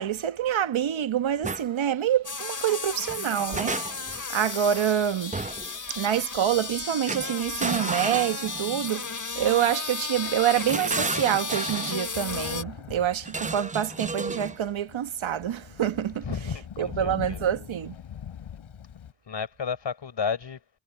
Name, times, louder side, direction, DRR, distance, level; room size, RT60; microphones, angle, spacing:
voice 1, 0.0-5.4 5.9-16.3 16.8-17.9, right 10 dB, 75° right, 1.3 m, -27 dB
sound 1, 1.4-1.7 3.1-4.2 5.3-5.7 7.1-8.9 10.2-12.0 13.2-14.6, right 3 dB, 15° right, 0.7 m, -33 dB
sound 2, 2.2-12.6, left 4 dB, 40° left, 2.7 m, -34 dB
Thunder, 9.1-10.4 11.0-11.1 11.3-19.1, left 9 dB, 85° left, 5.1 m, -43 dB
voice 2, 16.2-17.4 19.3-20.6, left 6 dB, 60° left, 5.0 m, -32 dB
cardioid pair, 55°, 48 cm